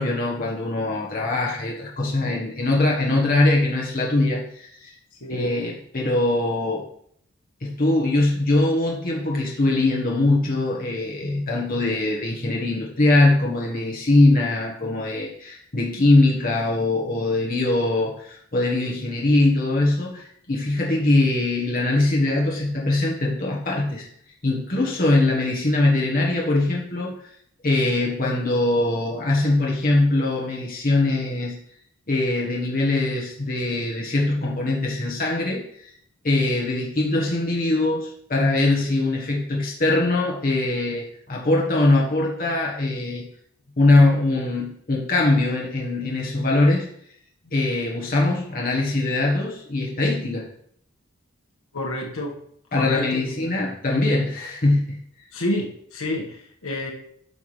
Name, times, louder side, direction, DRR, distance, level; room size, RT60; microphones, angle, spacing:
voice 1, 0.0-4.9 5.3-6.8 7.6-24.1 24.4-27.3 27.6-31.6 32.1-35.9 36.2-43.2 43.8-46.9 47.5-50.4 52.7-55.0, left 2 dB, 40° left, -3 dB, 1.3 m, -22 dB
voice 2, 51.7-52.4 52.7-53.7 55.3-56.9, left 1 dB, 70° left, 0 dB, 1.5 m, -29 dB
9.3 x 5.8 x 3.3 m, 0.66 s
head